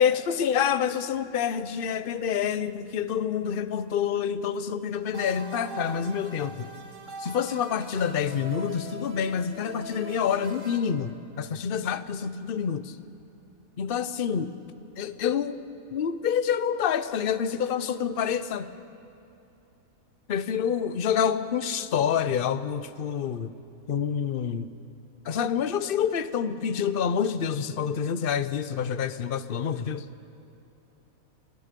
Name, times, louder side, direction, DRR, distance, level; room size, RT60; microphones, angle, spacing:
voice 1, 0.0-6.7 7.2-13.0 13.8-14.5 15.0-15.6 15.9-18.7 20.3-23.5 23.9-24.7 25.2-30.0, left 8 dB, 50° left, 13 dB, 0.8 m, -27 dB
sound 1, 5.1-10.8, right 2 dB, 60° right, 2.5 m, -41 dB
28.0 x 19.0 x 5.2 m, 2.9 s
omnidirectional pair, 1.5 m